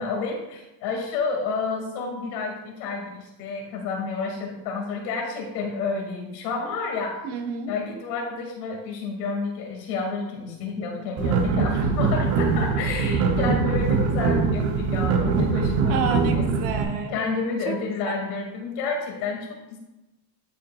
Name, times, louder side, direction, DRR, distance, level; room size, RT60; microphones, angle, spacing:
voice 1, 0.0-7.2 7.7-16.4 17.1-19.8, left 4 dB, 70° left, 1 dB, 2.2 m, -30 dB
voice 2, 7.2-7.7 15.9-17.2 17.7-17.8 18.0-18.2, right 5 dB, 50° right, 4 dB, 1.0 m, -29 dB
sound 1, 11.2-16.8, right 4 dB, 30° right, 0.7 m, -22 dB
11.0 x 4.7 x 2.3 m, 0.99 s
cardioid pair, 155°, 49 cm